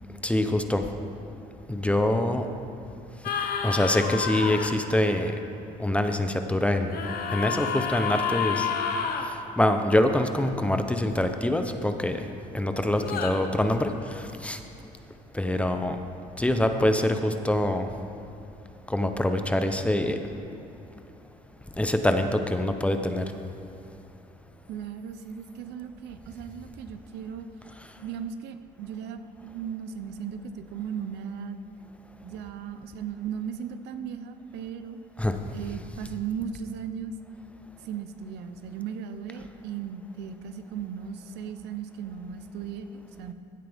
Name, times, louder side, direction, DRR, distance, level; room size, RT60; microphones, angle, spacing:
voice 1, 0.2-0.9 1.7-2.5 3.6-5.4 5.8-7.0 7.3-8.7 9.6-12.2 12.5-14.6 15.3-16.0 16.4-17.9 18.9-20.2 21.8-23.2 35.2-35.4, left 1 dB, 5° left, 7 dB, 0.7 m, -25 dB
sound 1, 3.2-4.7 6.9-9.3 13.0-13.3, left 6 dB, 65° left, 1.0 m, -29 dB
voice 2, 24.7-27.5 28.0-31.6 32.2-35.0 35.5-37.1 37.8-43.3, right 7 dB, 80° right, 9 dB, 0.7 m, -36 dB
16.0 x 9.7 x 3.5 m, 2.8 s
cardioid pair, 110°, 17 cm